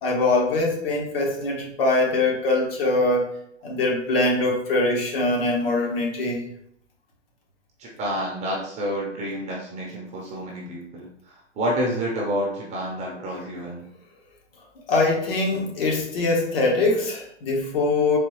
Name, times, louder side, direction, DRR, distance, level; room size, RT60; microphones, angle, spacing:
voice 1, 0.0-3.3 3.6-6.4 14.9-18.2, left 2 dB, 50° left, -1 dB, 1.4 m, -23 dB
voice 2, 7.8-13.8, equal, 20° right, -2 dB, 0.7 m, -29 dB
4.1 x 3.0 x 3.1 m, 0.69 s
hypercardioid pair, 130°, 37 cm